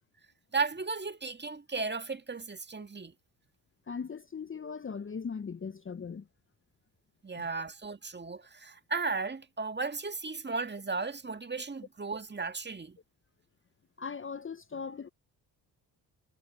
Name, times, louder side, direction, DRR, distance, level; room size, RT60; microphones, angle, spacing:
voice 1, 0.5-3.1 7.2-13.0, right 4 dB, 20° right, 1.9 m, -35 dB
voice 2, 3.9-6.3 7.3-7.5 14.0-15.1, left 5 dB, 25° left, 1.0 m, -39 dB
hypercardioid pair, 50°, 48 cm